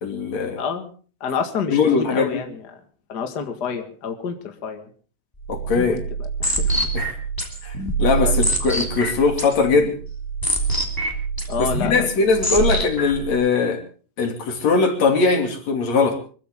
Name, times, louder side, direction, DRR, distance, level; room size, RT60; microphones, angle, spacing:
voice 1, 0.0-0.6 1.7-2.4 5.5-6.0 6.9-7.1 7.6-10.0 11.6-13.8 14.2-16.2, left 4 dB, 45° left, 4 dB, 3.5 m, -20 dB
voice 2, 0.5-0.9 1.2-2.8 3.1-4.9 5.9-6.8 8.2-8.3 11.5-12.6, left 6 dB, 60° left, 5 dB, 1.0 m, -29 dB
sound 1, 5.4-13.3, right 2 dB, 5° left, 2.3 m, -25 dB
25.0 x 15.0 x 3.7 m, 0.39 s
omnidirectional pair, 4.8 m